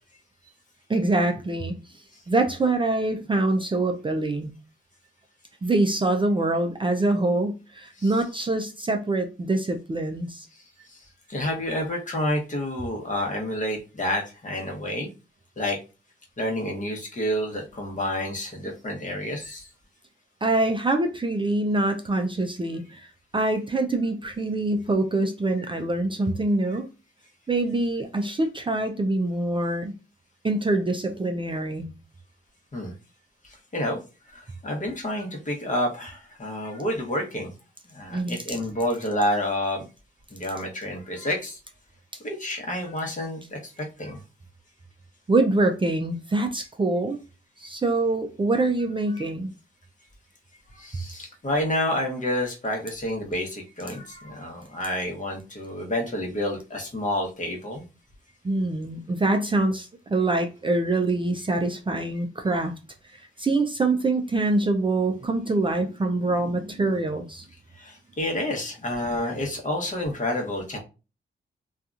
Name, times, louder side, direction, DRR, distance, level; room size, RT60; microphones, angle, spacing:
voice 1, 0.9-1.8 2.3-4.5 5.6-10.5 20.4-23.1 23.3-26.9 27.5-29.9 30.4-31.9 38.1-38.6 45.3-47.2 47.6-49.5 58.4-62.7 63.4-67.5, right 2 dB, 25° right, 0.4 m, -25 dB
voice 2, 10.5-15.1 15.6-15.8 16.4-19.7 32.7-32.9 33.4-34.0 34.3-37.5 37.8-39.9 40.3-41.6 42.2-44.2 49.1-49.3 50.7-57.8 67.7-70.8, left 1 dB, 35° left, 1.0 m, -29 dB
2.7 x 2.4 x 2.4 m
cardioid pair, 65°, 21 cm